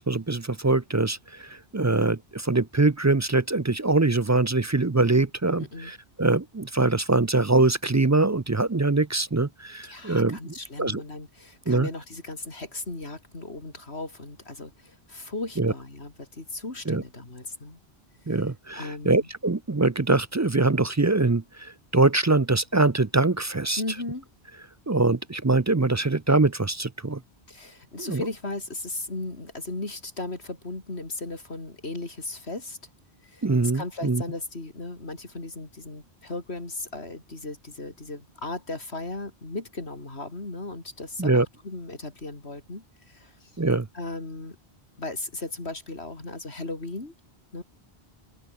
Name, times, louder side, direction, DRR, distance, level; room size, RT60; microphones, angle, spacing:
voice 1, 0.0-11.0 11.7-11.9 15.6-15.7 16.9-17.0 18.3-23.8 24.9-27.2 28.0-28.3 33.4-34.2 41.2-41.5 43.6-43.9, right 3 dB, 25° right, 0.4 m, -23 dB
voice 2, 5.6-5.9 9.8-17.8 18.7-19.3 23.8-24.3 27.5-32.8 33.2-43.5 43.9-44.6 45.0-47.1 47.5-47.6, left 2 dB, 85° left, 4.3 m, -36 dB
open air
omnidirectional pair, 1.1 m